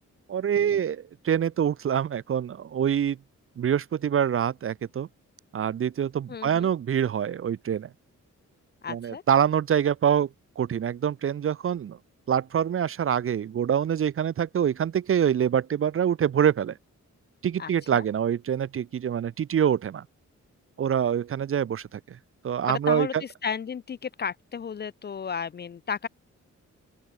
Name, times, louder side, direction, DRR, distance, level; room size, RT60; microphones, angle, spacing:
voice 1, 0.3-3.2 3.6-5.1 5.5-7.9 8.9-10.3 10.6-12.0 12.3-16.8 17.4-20.1 20.8-22.2 22.4-23.2, right 9 dB, 45° right, 0.5 m, -25 dB
voice 2, 6.3-6.7 8.8-9.2 17.6-18.0 22.7-26.1, left 6 dB, 35° left, 0.4 m, -33 dB
open air
wide cardioid pair, 140°, 30 cm